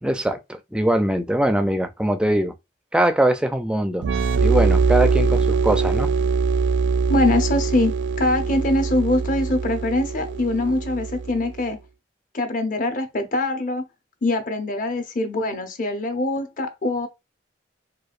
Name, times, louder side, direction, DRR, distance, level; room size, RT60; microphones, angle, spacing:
voice 1, 0.0-2.5 2.9-4.0 4.4-6.1, right 1 dB, 5° right, 0.4 m, -22 dB
sound 1, 4.0-11.5, right 5 dB, 75° right, 0.3 m, -22 dB
voice 2, 7.1-11.8 12.3-13.8 14.2-17.1, left 2 dB, 45° left, 0.7 m, -23 dB
4.7 x 2.4 x 2.4 m
head